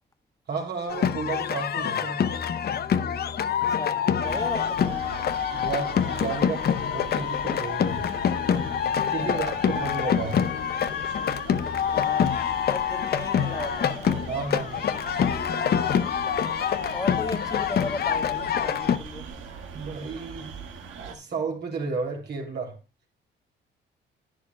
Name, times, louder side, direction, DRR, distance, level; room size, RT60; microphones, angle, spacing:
voice 1, 0.5-2.2 5.5-10.4 14.3-14.9 19.7-20.6 21.1-22.7, right 4 dB, 55° right, 3.0 m, -33 dB
sound 1, 0.9-19.0, left 8 dB, 55° left, 0.7 m, -26 dB
voice 2, 3.8-5.0 9.2-9.6 11.9-12.3 12.7-14.1 16.9-19.2, left 2 dB, 15° left, 1.4 m, -36 dB
sound 2, 4.2-21.1, right 6 dB, 75° right, 1.6 m, -41 dB
11.0 x 9.9 x 2.3 m
cardioid pair, 90°, 20 cm